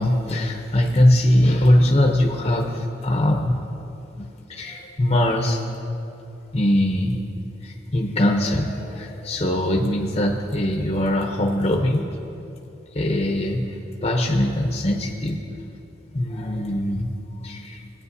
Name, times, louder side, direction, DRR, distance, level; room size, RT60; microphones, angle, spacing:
voice 1, 0.0-3.6 4.2-5.6 6.5-7.2 7.6-12.1 12.9-15.4 16.1-17.1 17.4-17.9, left 1 dB, 30° left, 1 dB, 0.7 m, -21 dB
19.5 x 8.7 x 2.7 m, 2.8 s
head